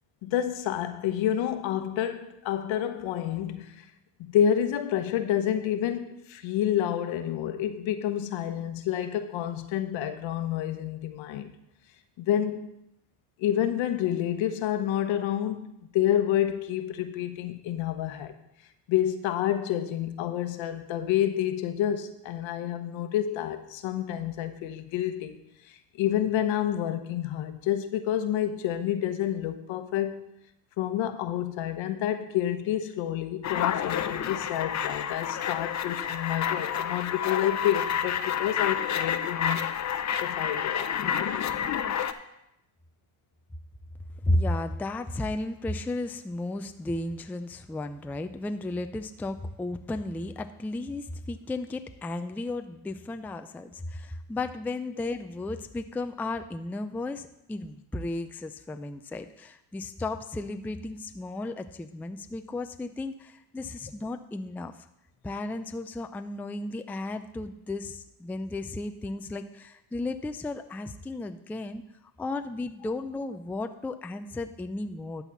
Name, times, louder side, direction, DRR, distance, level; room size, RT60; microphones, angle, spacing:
voice 1, 0.2-3.9 4.2-11.5 12.2-12.7 13.4-18.3 18.9-25.4 25.6-30.3 30.8-39.7 40.2-41.1, left 10 dB, 70° left, 1.1 m, -29 dB
sound 1, 33.4-42.1, left 8 dB, 35° left, 0.7 m, -29 dB
voice 2, 44.2-64.7 65.2-71.8 72.2-75.2, left 2 dB, 5° left, 0.4 m, -34 dB
12.0 x 4.1 x 7.2 m
supercardioid pair, 85°, 48 cm